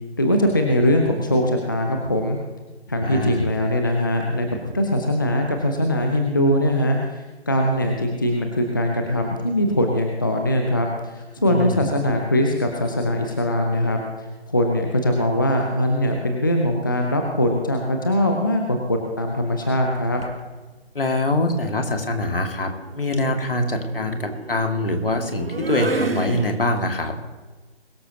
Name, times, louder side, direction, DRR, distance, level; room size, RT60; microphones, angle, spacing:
voice 1, 0.2-2.4 2.9-4.5 4.7-14.0 14.5-20.2, left 1 dB, 20° left, 2 dB, 0.7 m, -21 dB
voice 2, 3.0-3.5 11.5-11.9 20.9-27.1, left 1 dB, 55° left, 4 dB, 2.2 m, -24 dB
sound 1, 20.2-20.4 21.8-27.0, right 2 dB, 55° right, 1.5 m, -31 dB
22.0 x 13.0 x 2.9 m, 1.2 s
figure-of-eight pair, 155°, 33 cm